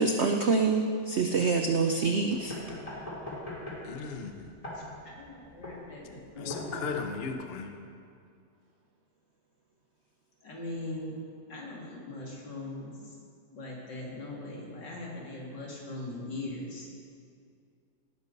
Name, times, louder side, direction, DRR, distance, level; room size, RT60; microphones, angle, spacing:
voice 1, 0.0-2.5, right 4 dB, 75° right, 4 dB, 0.6 m, -26 dB
sound 1, 2.3-7.3, left 1 dB, 20° left, 2.8 m, -41 dB
voice 2, 3.8-4.5 6.4-7.8, left 5 dB, 45° left, 4 dB, 0.8 m, -36 dB
voice 3, 4.7-6.7 10.4-11.2 11.5-13.2 13.5-16.9, left 2 dB, 70° left, -3 dB, 3.2 m, -40 dB
18.0 x 10.5 x 4.1 m, 2.3 s
omnidirectional pair, 2.0 m